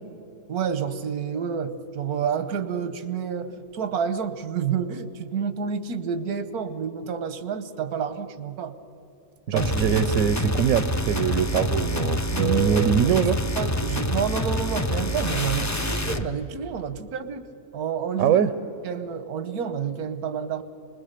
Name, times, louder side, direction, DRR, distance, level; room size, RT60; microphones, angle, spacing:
voice 1, 0.5-8.7 9.5-9.7 12.4-13.2 13.6-17.4 17.7-18.4 18.8-20.6, right 7 dB, 90° right, 11 dB, 1.5 m, -29 dB
voice 2, 9.5-13.4 18.2-18.5, right 8 dB, 70° right, 12 dB, 1.1 m, -22 dB
sound 1, 9.6-16.3, left 1 dB, 20° left, 0.5 m, -26 dB
27.0 x 20.5 x 6.7 m, 3.0 s
omnidirectional pair, 1.5 m